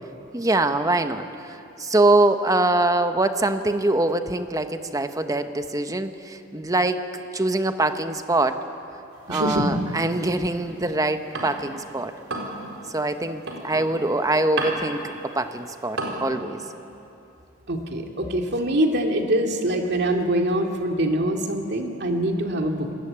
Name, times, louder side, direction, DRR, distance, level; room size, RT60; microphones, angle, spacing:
voice 1, 0.3-7.0 7.3-8.6 9.3-12.1 12.9-15.0 15.3-16.6, right 2 dB, 15° right, 8 dB, 1.0 m, -23 dB
sound 1, 9.1-11.8 12.1-16.2, right 2 dB, 70° right, 4.5 m, -34 dB
voice 2, 9.3-9.8 17.7-22.9, right 1 dB, 55° right, 3 dB, 2.4 m, -24 dB
26.5 x 20.0 x 8.8 m, 2.8 s
head